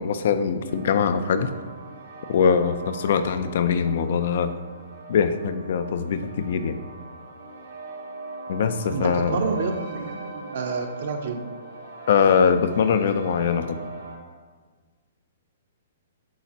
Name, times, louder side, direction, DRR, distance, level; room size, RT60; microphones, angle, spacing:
voice 1, 0.0-1.5 2.3-4.5 5.1-6.8 8.5-9.4 12.1-13.8, left 6 dB, 50° left, 11 dB, 0.4 m, -22 dB
sound 1, 0.6-14.2, right 3 dB, 85° right, 1.4 m, -40 dB
voice 2, 8.9-11.4, right 4 dB, 55° right, 4 dB, 0.7 m, -29 dB
8.6 x 4.0 x 2.9 m, 1.5 s
hypercardioid pair, 175°, 0 cm